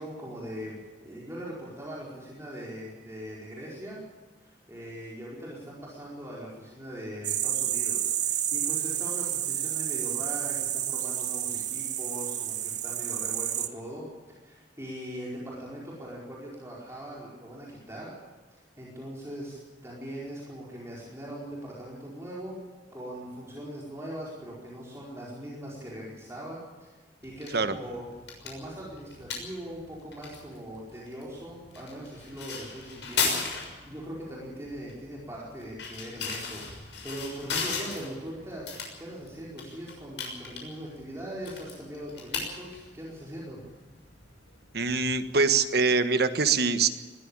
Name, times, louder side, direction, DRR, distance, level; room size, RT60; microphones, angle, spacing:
voice 1, 0.0-4.0 4.4-18.1 18.8-19.6 19.8-22.6 22.9-28.1 28.4-38.7 39.0-43.6, equal, 15° right, -5 dB, 4.7 m, -41 dB
sound 1, 7.2-13.7, right 10 dB, 45° right, 1.3 m, -30 dB
sound 2, 27.2-45.6, left 5 dB, 80° left, 6.4 m, -37 dB
voice 2, 44.7-46.9, right 4 dB, 60° right, 10 dB, 1.5 m, -24 dB
20.5 x 15.0 x 8.7 m, 1.4 s
head